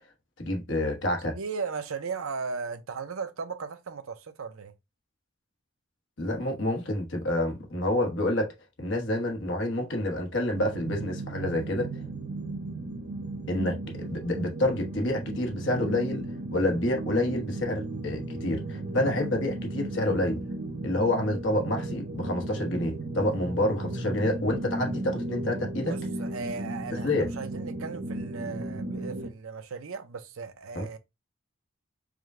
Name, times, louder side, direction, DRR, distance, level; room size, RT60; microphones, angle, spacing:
voice 1, 0.4-1.4 6.2-12.0 13.5-16.3 16.5-20.4 20.8-25.9 27.0-27.3 30.7-30.9, left 1 dB, 60° left, 1.1 m, -28 dB
voice 2, 1.2-4.7 25.8-31.0, right 5 dB, 80° right, 0.6 m, -37 dB
sound 1, 10.5-29.3, right 2 dB, 45° right, 1.0 m, -35 dB
4.9 x 2.2 x 3.6 m
head